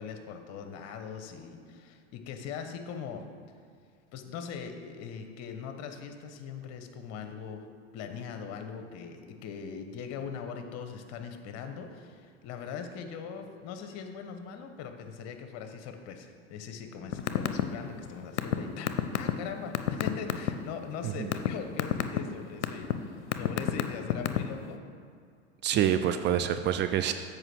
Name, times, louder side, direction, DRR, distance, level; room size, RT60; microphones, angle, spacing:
voice 1, 0.0-3.2 4.1-7.6 7.9-24.8, left 6 dB, 50° left, 6 dB, 1.1 m, -41 dB
sound 1, 17.1-17.6 17.9-20.5 21.0-21.5 21.8-22.2 22.6-22.9 23.3-24.6, left 12 dB, 80° left, 0.6 m, -26 dB
voice 2, 25.6-27.1, right 10 dB, 35° right, 9 dB, 0.4 m, -27 dB
7.9 x 5.0 x 6.1 m, 2.3 s
hypercardioid pair, 90°, 34 cm